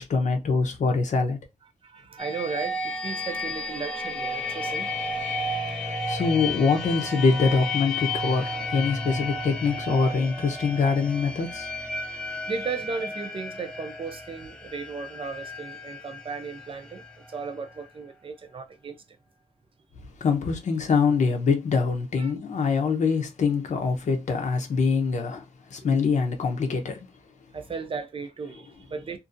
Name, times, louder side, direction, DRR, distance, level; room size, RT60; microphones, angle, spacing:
voice 1, 0.0-1.4 5.8-11.7 20.2-25.4 25.7-27.1, left 5 dB, 75° left, 0.6 m, -24 dB
voice 2, 1.8-4.9 12.5-19.0 22.2-22.3 27.5-29.2, right 5 dB, 45° right, 0.5 m, -35 dB
sound 1, 2.2-17.8, left 2 dB, 5° left, 0.6 m, -33 dB
2.6 x 2.5 x 2.5 m
wide cardioid pair, 140°, 13 cm